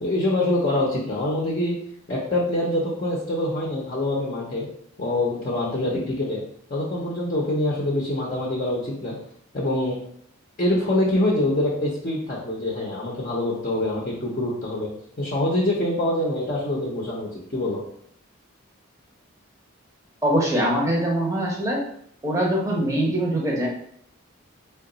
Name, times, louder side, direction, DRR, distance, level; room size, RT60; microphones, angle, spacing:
voice 1, 0.0-1.8 2.1-4.7 5.0-6.4 6.7-9.2 9.5-10.0 10.6-14.9 15.2-17.8, left 1 dB, 40° left, -4 dB, 0.6 m, -25 dB
voice 2, 20.2-21.8 22.2-23.7, right 1 dB, 15° right, -2 dB, 0.7 m, -23 dB
3.7 x 2.2 x 3.8 m, 0.67 s
head